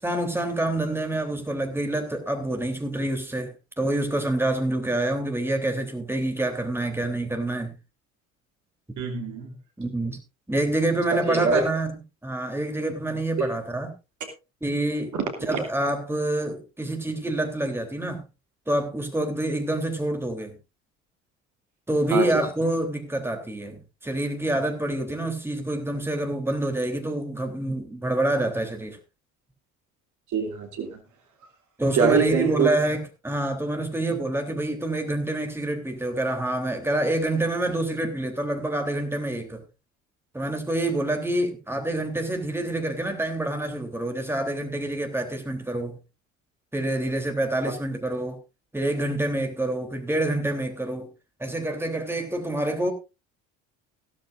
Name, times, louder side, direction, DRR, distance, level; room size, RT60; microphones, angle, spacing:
voice 1, 0.0-3.5 3.8-7.7 9.8-10.2 10.5-11.9 12.2-13.9 14.6-15.1 15.4-18.2 18.7-20.6 21.9-29.0 31.8-39.6 40.3-46.0 46.7-48.4 48.7-51.1 51.4-52.9, right 1 dB, 5° right, 3.5 m, -27 dB
voice 2, 9.0-9.5 11.1-11.6 13.4-13.5 14.2-14.3 15.1-15.6 22.1-22.4 30.3-31.0 31.9-32.7, right 6 dB, 45° right, 2.9 m, -25 dB
15.5 x 13.5 x 2.6 m
figure-of-eight pair, 60°, 40 cm